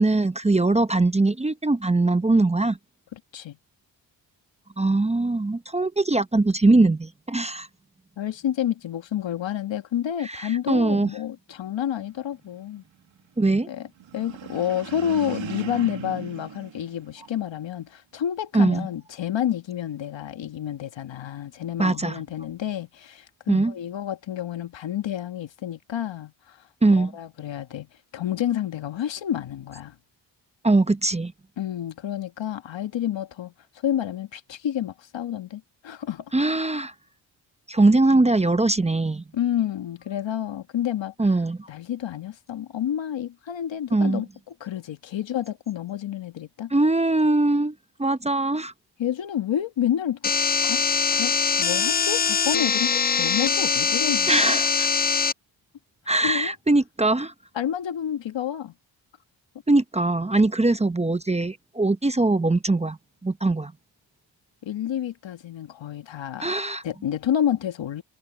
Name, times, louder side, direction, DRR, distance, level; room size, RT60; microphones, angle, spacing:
voice 1, 0.0-2.8 4.8-7.7 10.2-11.1 13.4-13.7 18.5-18.9 21.8-22.2 23.5-23.7 26.8-27.1 30.6-31.3 36.3-36.9 37.7-39.2 41.2-41.7 43.9-44.2 46.7-48.7 54.3-54.9 56.1-57.3 59.7-63.0 63.2-63.7 66.4-66.8, right 2 dB, 15° right, 0.7 m, -21 dB
voice 2, 3.1-3.6 8.2-12.8 13.7-13.9 14.1-26.6 26.9-29.9 31.6-33.5 33.8-36.2 39.3-41.1 41.7-44.3 44.6-46.7 49.0-50.8 51.1-54.6 56.2-56.5 57.5-58.7 64.6-66.5 66.8-68.0, left 10 dB, 75° left, 1.5 m, -29 dB
sound 1, 14.0-17.6, right 10 dB, 90° right, 2.1 m, -38 dB
sound 2, 50.2-55.3, left 6 dB, 25° left, 0.4 m, -22 dB
cardioid pair, 90°, 45 cm